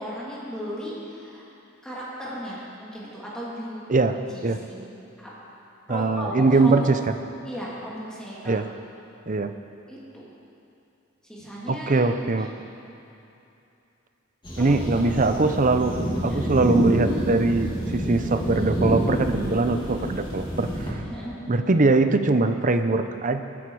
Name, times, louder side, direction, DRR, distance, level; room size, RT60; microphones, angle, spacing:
voice 1, 0.0-1.4 1.8-3.8 4.3-5.3 5.9-6.3 6.6-6.9 7.4-8.6 9.9-10.3 11.2-12.1 12.4-12.5 14.6-14.8 15.3-15.4 16.3-16.5 21.0-21.4, equal, 5° left, -7 dB, 2.9 m, -36 dB
voice 2, 5.9-7.0 8.5-8.7 9.3-9.5 11.7-12.5 14.6-16.0 16.2-20.7 21.5-23.4, right 3 dB, 40° right, 8 dB, 0.7 m, -21 dB
sound 1, 14.4-20.9, equal, 25° left, 2.9 m, -28 dB
22.0 x 10.0 x 4.9 m, 2.8 s
head